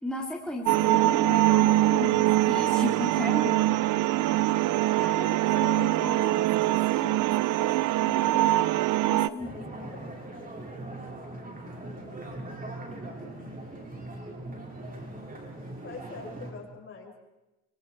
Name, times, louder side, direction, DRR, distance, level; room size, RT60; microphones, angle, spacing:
voice 1, 0.0-3.7 4.3-8.6 9.1-9.9 12.9-13.5, left 2 dB, 5° left, -2 dB, 3.1 m, -37 dB
sound 1, 0.7-9.3, right 15 dB, 80° right, 0.7 m, -23 dB
voice 2, 9.1-10.0 10.4-10.6 15.8-17.2, left 4 dB, 45° left, 0 dB, 7.0 m, -44 dB
sound 2, 9.4-16.5, right 2 dB, 30° right, 5.6 m, -40 dB
25.0 x 25.0 x 4.7 m, 1.0 s
cardioid pair, 90°, 30 cm